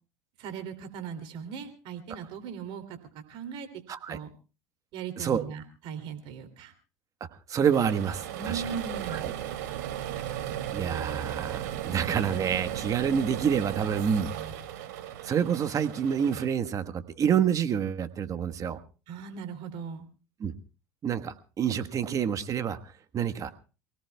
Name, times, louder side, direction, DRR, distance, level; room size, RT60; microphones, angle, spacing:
voice 1, 0.4-3.0 3.3-3.7 4.1-4.3 4.9-6.7 8.3-9.2 19.1-20.0, right 6 dB, 60° right, 8 dB, 2.8 m, -38 dB
voice 2, 7.5-8.6 9.1-9.3 10.7-14.3 15.2-18.8 20.4-20.5 21.0-22.8 23.1-23.5, right 8 dB, 35° right, 10 dB, 1.3 m, -28 dB
sound 1, 7.7-16.5, right 10 dB, 80° right, 2.6 m, -36 dB
28.5 x 17.5 x 2.3 m, 0.35 s
supercardioid pair, 100°, 10 cm